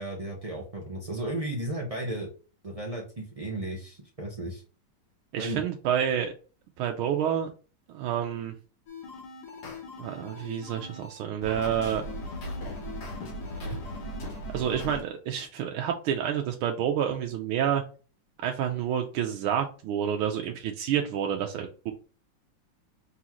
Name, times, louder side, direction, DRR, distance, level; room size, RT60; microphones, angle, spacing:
voice 1, 0.0-2.3 2.6-4.6 5.4-5.6, right 1 dB, 60° right, -2 dB, 0.3 m, -34 dB
voice 2, 5.3-6.3 6.8-7.5 7.9-8.5 10.0-12.0 13.6-13.8 14.5-17.8 18.4-21.9, right 9 dB, 90° right, 3 dB, 1.5 m, -29 dB
sound 1, 8.9-15.0, left 1 dB, 60° left, 1.6 m, -38 dB
3.9 x 3.7 x 2.9 m, 0.36 s
omnidirectional pair, 2.2 m